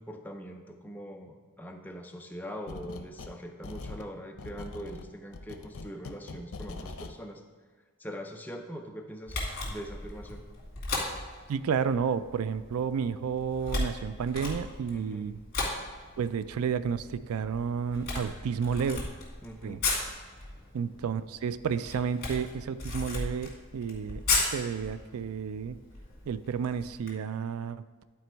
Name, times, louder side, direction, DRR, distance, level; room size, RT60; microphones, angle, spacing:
voice 1, 0.0-7.4 8.0-10.4 14.9-15.3 19.4-19.8, equal, 10° left, 3 dB, 0.5 m, -42 dB
sound 1, 2.7-3.4 3.6-7.2, left 3 dB, 85° left, 0.6 m, -42 dB
Camera, 9.3-27.1, left 3 dB, 45° left, 2.2 m, -36 dB
voice 2, 11.5-15.4 16.2-19.0 19.6-19.8 20.7-25.8 26.3-27.8, right 6 dB, 90° right, 14 dB, 0.4 m, -31 dB
11.0 x 4.3 x 4.5 m, 1.5 s
head